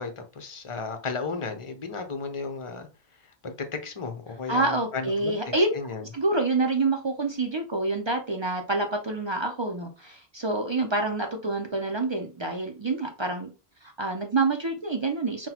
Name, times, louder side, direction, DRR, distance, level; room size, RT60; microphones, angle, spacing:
voice 1, 0.0-2.9 3.4-5.3 5.7-6.0, left 4 dB, 35° left, 7 dB, 0.6 m, -34 dB
voice 2, 4.5-5.7 6.1-13.5 13.8-15.5, right 2 dB, 40° right, 4 dB, 0.4 m, -27 dB
5.8 x 2.2 x 2.8 m, 0.31 s
omnidirectional pair, 1.1 m